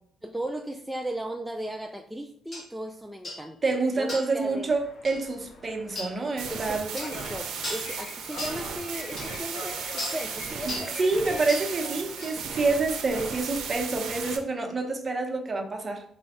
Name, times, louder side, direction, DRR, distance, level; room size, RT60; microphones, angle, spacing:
voice 1, 0.2-3.6 4.0-4.7 6.5-11.0, right 1 dB, 5° right, 3 dB, 0.3 m, -36 dB
sound 1, 2.5-2.7 3.2-3.4 4.1-4.4 5.0-5.2 5.9-6.1 7.0-7.1 7.6-7.9 8.4-8.6 9.2-9.3 10.0-10.2 10.7-10.9 11.5-11.7 12.2-12.4, left 1 dB, 40° left, 1.6 m, -36 dB
voice 2, 3.6-6.9 10.6-16.0, right 3 dB, 35° right, 3 dB, 0.8 m, -27 dB
sound 2, 4.4-13.8, left 3 dB, 65° left, 0.6 m, -44 dB
sound 3, 6.4-14.4, right 6 dB, 75° right, 0.6 m, -36 dB
4.2 x 2.2 x 4.2 m, 0.64 s
cardioid pair, 90°, 0 cm